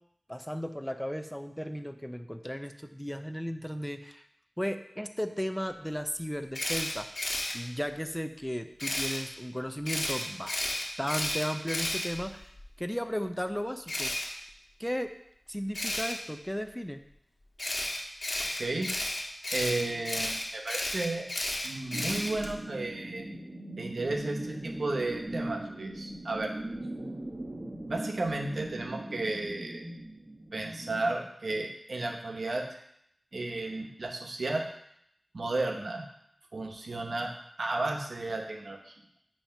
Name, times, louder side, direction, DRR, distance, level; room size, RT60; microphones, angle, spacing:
voice 1, 0.3-4.3 4.6-7.1 7.5-10.7 11.0-12.5 12.8-14.1 14.8-15.1 15.5-17.0, equal, 5° left, 8 dB, 0.5 m, -35 dB
Camera, 6.5-7.5 8.8-9.2 9.9-12.6 13.9-14.3 15.7-16.1 17.6-22.5, left 1 dB, 70° left, 1.4 m, -32 dB
voice 2, 18.6-18.9 19.5-21.3 21.6-23.3 23.8-26.5 27.9-29.8 30.5-32.7 33.3-34.6 35.3-36.0 36.5-37.3 37.6-38.9, right 2 dB, 90° right, 2 dB, 0.9 m, -33 dB
sound 1, 21.9-31.1, right 1 dB, 45° right, 1.4 m, -40 dB
8.7 x 2.9 x 5.7 m, 0.73 s
wide cardioid pair, 45°, 0 cm